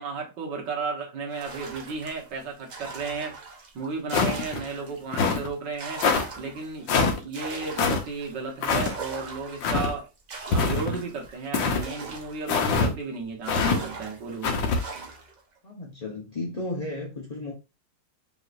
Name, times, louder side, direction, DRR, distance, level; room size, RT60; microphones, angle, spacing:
voice 1, 0.0-3.4 3.7-6.0 6.4-6.9 7.2-10.1 10.5-14.7, right 4 dB, 70° right, 1.8 m, -34 dB
sound 1, 1.3-5.1 5.5-13.0 13.4-15.4, right 3 dB, 50° right, 0.5 m, -41 dB
sound 2, 4.1-4.6 5.1-5.5 6.0-6.3 6.9-7.2 7.8-8.0 8.6-8.9 9.6-9.9 10.5-11.0 11.5-11.8 12.5-12.9 13.5-13.8 14.4-14.8, left 4 dB, 80° left, 1.6 m, -23 dB
voice 2, 15.6-17.5, left 2 dB, 35° left, 0.6 m, -34 dB
5.5 x 3.1 x 2.5 m
omnidirectional pair, 2.0 m